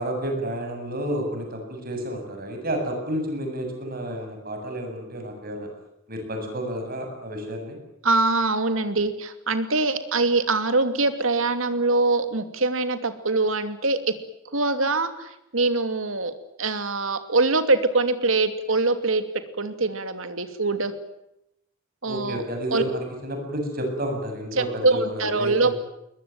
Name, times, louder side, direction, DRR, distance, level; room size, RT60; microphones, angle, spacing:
voice 1, 0.0-5.7 6.1-7.8 22.0-25.7, equal, 45° right, 4 dB, 7.8 m, -30 dB
voice 2, 8.0-14.1 14.5-16.3 16.6-19.2 19.6-20.9 22.0-22.4 22.7-22.8 24.5-25.7, right 3 dB, 80° right, 9 dB, 2.7 m, -23 dB
22.0 x 21.5 x 9.3 m, 0.83 s
head